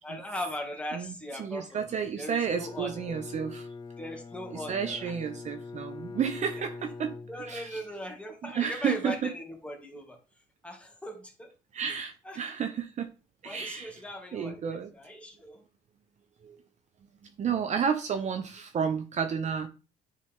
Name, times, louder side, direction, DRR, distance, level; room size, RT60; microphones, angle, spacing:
voice 1, 0.0-3.1 4.0-5.2 7.2-10.2 10.6-11.5 12.2-12.4 13.4-15.6, left 1 dB, 5° left, 2.1 m, -39 dB
voice 2, 0.9-3.7 4.5-7.1 7.5-7.8 8.4-9.3 11.7-13.1 13.4-13.9 14.3-14.9 16.4-16.6 17.4-19.7, right 7 dB, 45° right, 0.8 m, -31 dB
Bowed string instrument, 2.4-7.9, left 4 dB, 25° left, 0.7 m, -43 dB
9.8 x 4.1 x 3.6 m
cardioid pair, 110°, 17 cm